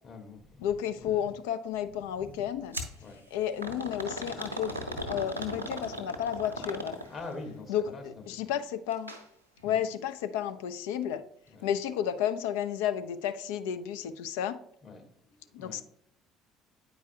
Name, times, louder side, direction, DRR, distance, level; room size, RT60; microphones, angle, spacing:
voice 1, 0.0-0.7 1.0-1.2 2.2-2.4 3.0-3.2 7.1-8.5 9.6-9.8 11.5-11.7 14.8-15.8, left 3 dB, 40° left, 3 dB, 1.5 m, -45 dB
voice 2, 0.6-2.8 3.3-4.7 5.1-7.0 7.7-9.1 9.6-11.2 11.6-14.6 15.5-15.8, left 9 dB, 65° left, 10 dB, 0.4 m, -32 dB
sound 1, 2.7-3.0 3.6-7.3 8.9-9.2 9.6-9.7 10.5-10.6, equal, 90° right, 0.7 m, -37 dB
8.9 x 4.7 x 2.7 m, 0.70 s
figure-of-eight pair, 55°, 0 cm